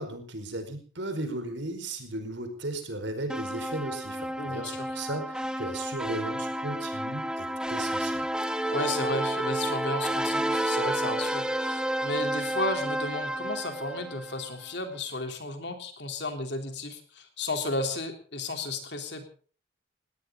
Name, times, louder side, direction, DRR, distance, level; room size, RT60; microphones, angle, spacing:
voice 1, 0.0-8.3, right 2 dB, 65° right, 7 dB, 4.8 m, -36 dB
sound 1, 3.3-14.5, right 1 dB, 5° right, 0.8 m, -31 dB
voice 2, 4.4-5.0 8.7-19.3, left 2 dB, 55° left, 6 dB, 3.4 m, -33 dB
19.0 x 18.0 x 3.8 m, 0.41 s
head